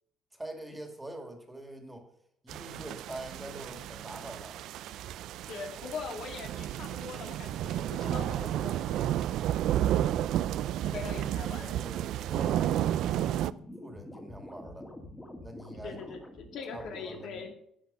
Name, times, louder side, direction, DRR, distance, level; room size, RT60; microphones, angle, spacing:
voice 1, 0.3-2.1 2.4-4.6 10.9-12.7 13.8-14.9 15.4-16.1 16.7-17.5, right 1 dB, 10° right, 4 dB, 2.3 m, -45 dB
sound 1, 2.5-13.5, right 12 dB, 70° right, 0.4 m, -32 dB
voice 2, 5.5-9.2 10.8-11.8 15.8-17.5, left 5 dB, 70° left, 3 dB, 2.4 m, -42 dB
sound 2, 9.6-10.0 12.3-17.4, left 1 dB, 10° left, 2.2 m, -47 dB
11.5 x 8.7 x 5.6 m, 0.69 s
cardioid pair, 125°, 0 cm